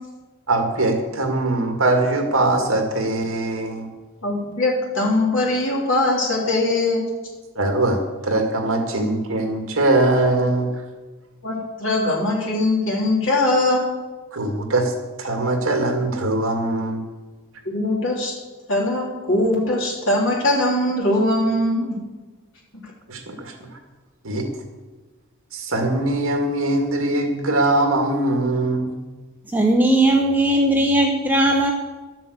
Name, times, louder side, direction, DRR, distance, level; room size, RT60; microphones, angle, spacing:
voice 1, 0.5-3.9 7.6-10.7 14.3-14.9 15.2-17.0 23.1-23.7 24.2-24.5 25.5-28.9, right 2 dB, 65° right, 3 dB, 2.1 m, -21 dB
voice 2, 4.2-7.1 11.4-13.8 17.6-18.3 18.7-22.0, left 2 dB, 60° left, -3 dB, 3.6 m, -21 dB
voice 3, 29.5-31.7, right 1 dB, 10° right, 2 dB, 0.8 m, -18 dB
12.0 x 7.6 x 8.1 m, 1.3 s
head